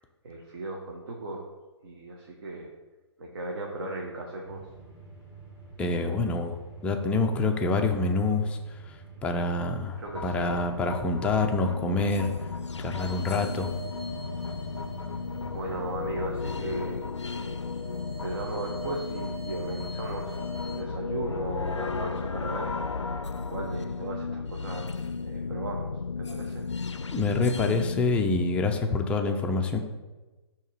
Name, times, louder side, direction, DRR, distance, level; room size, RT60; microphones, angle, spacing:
voice 1, 0.2-1.4 1.8-2.7 3.2-4.6 10.0-10.6 15.0-15.1 15.5-17.0 17.3-17.6 18.2-22.8 23.5-25.9 26.2-26.7, right 2 dB, 55° right, 0 dB, 0.9 m, -37 dB
sound 1, 4.4-16.9, right 4 dB, 15° right, 1.1 m, -47 dB
voice 2, 5.8-8.6 8.9-12.3 12.8-13.7 27.1-29.8, left 3 dB, 10° left, 3 dB, 0.4 m, -27 dB
sound 2, 10.0-28.8, left 4 dB, 90° left, 0.4 m, -34 dB
sound 3, 13.0-16.3 16.9-20.8, equal, 70° right, 1.8 m, -44 dB
6.3 x 2.9 x 5.5 m, 1.2 s
figure-of-eight pair, 130°, 15 cm